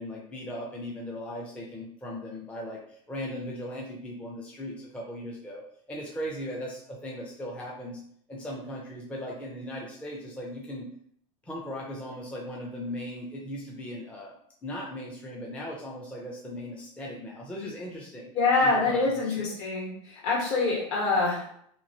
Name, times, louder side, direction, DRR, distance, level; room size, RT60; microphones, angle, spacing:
voice 1, 0.0-5.6 5.9-8.0 8.3-10.9 11.4-18.3 18.6-19.4, equal, 10° left, -3 dB, 0.5 m, -38 dB
voice 2, 18.3-21.5, left 3 dB, 55° left, -3 dB, 1.4 m, -25 dB
3.0 x 2.5 x 2.7 m, 0.64 s
supercardioid pair, 140°, 16 cm